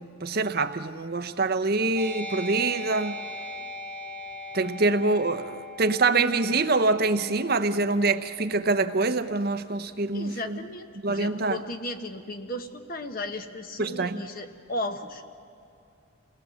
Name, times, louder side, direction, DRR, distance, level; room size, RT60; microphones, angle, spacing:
voice 1, 0.0-3.2 4.5-10.6 11.0-11.6 13.8-14.2, right 3 dB, 50° right, 8 dB, 0.8 m, -25 dB
sound 1, 2.0-9.0, left 1 dB, 5° left, 1.7 m, -40 dB
voice 2, 10.1-15.3, left 1 dB, 45° left, 7 dB, 1.2 m, -35 dB
29.0 x 19.0 x 7.7 m, 2.7 s
head